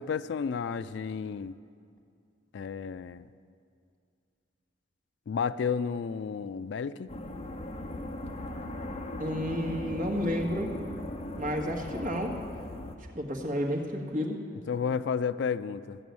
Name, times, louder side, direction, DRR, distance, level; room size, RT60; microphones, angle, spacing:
voice 1, 0.0-1.6 2.5-3.3 5.3-7.1 14.7-16.0, left 6 dB, 65° left, 15 dB, 0.3 m, -32 dB
sound 1, 7.1-13.0, left 1 dB, 30° left, 0.7 m, -38 dB
voice 2, 9.2-10.7 11.3-12.3 13.1-14.4, equal, 40° right, 0 dB, 1.5 m, -31 dB
14.5 x 6.1 x 9.4 m, 2.3 s
head